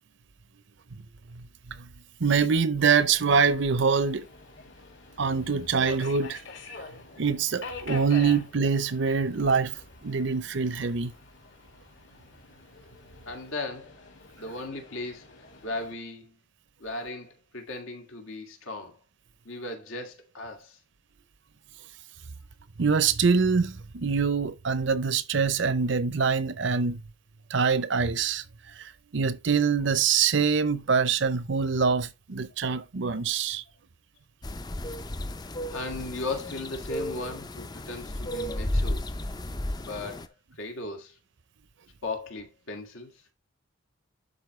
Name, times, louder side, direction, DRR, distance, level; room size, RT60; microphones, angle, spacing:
voice 1, 1.3-1.9 2.2-4.3 5.2-6.4 7.2-9.8 10.0-11.1 22.8-27.0 27.5-28.4 28.8-33.6, right 5 dB, 60° right, 0.6 m, -25 dB
Subway metro underground, 2.9-15.9, left 3 dB, 60° left, 2.1 m, -46 dB
voice 2, 13.3-13.9 14.4-15.3 15.6-16.4 16.8-19.0 19.5-20.8 35.7-39.0 39.8-41.1 42.0-43.1, left 2 dB, 80° left, 2.1 m, -37 dB
sound 1, 34.4-40.3, left 1 dB, 20° left, 0.4 m, -33 dB
11.5 x 4.3 x 3.2 m
head